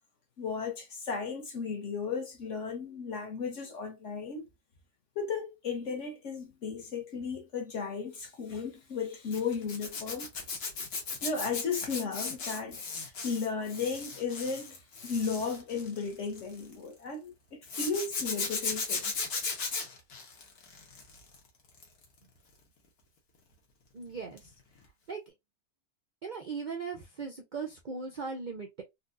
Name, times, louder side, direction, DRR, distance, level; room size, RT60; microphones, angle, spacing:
voice 1, 0.4-4.5 5.2-10.3 11.2-19.1, left 5 dB, 55° left, 1.2 m, -35 dB
Zipper (clothing), 9.3-16.7 17.7-21.3 21.7-22.0 24.4-24.5 24.8-24.9, left 4 dB, 85° left, 1.6 m, -36 dB
voice 2, 23.9-24.5 25.1-25.2 26.2-28.8, right 5 dB, 75° right, 0.4 m, -38 dB
4.1 x 2.2 x 2.5 m
omnidirectional pair, 1.6 m